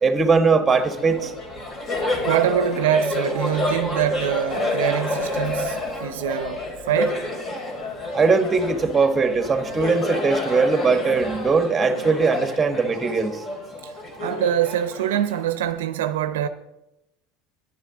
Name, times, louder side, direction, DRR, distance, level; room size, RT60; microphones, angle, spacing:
voice 1, 0.0-1.3 8.1-13.4, right 4 dB, 20° right, 1.2 m, -20 dB
Laughter, 0.7-15.7, left 2 dB, 35° left, 3.1 m, -29 dB
voice 2, 2.2-7.3 13.8-13.9 14.2-16.5, right 10 dB, 80° right, 0.6 m, -24 dB
10.0 x 9.7 x 3.7 m
hypercardioid pair, 90°, 0 cm